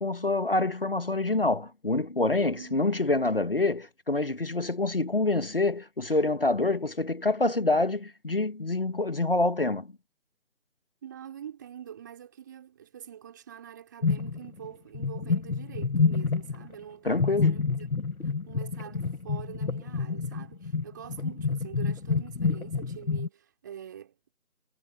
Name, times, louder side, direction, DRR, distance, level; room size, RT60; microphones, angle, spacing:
voice 1, 0.0-9.9 17.0-17.6, left 2 dB, 40° left, 1.4 m, -26 dB
voice 2, 2.4-2.9 11.0-18.0 18.5-24.2, right 9 dB, 15° right, 4.2 m, -45 dB
sound 1, 14.0-14.7 14.9-16.7 17.1-23.3, left 4 dB, 70° left, 1.8 m, -28 dB
figure-of-eight pair, 165°, 43 cm